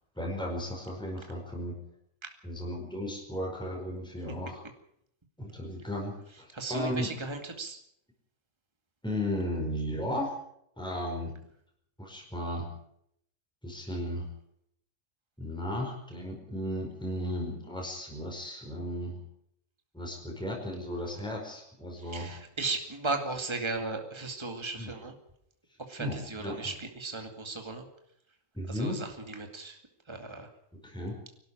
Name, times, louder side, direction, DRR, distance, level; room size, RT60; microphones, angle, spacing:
voice 1, 0.1-1.7 2.4-4.6 5.4-7.1 9.0-10.3 10.8-11.3 12.0-12.7 13.6-14.3 15.4-19.2 19.9-22.3 24.8-24.9 26.0-26.7 28.5-29.0 30.8-31.2, equal, 5° left, 0 dB, 4.9 m, -35 dB
voice 2, 6.5-7.8 22.0-25.2 25.8-27.9 28.7-29.8 30.1-30.5, right 3 dB, 20° right, 4 dB, 2.3 m, -36 dB
24.5 x 12.5 x 9.0 m, 0.73 s
omnidirectional pair, 1.4 m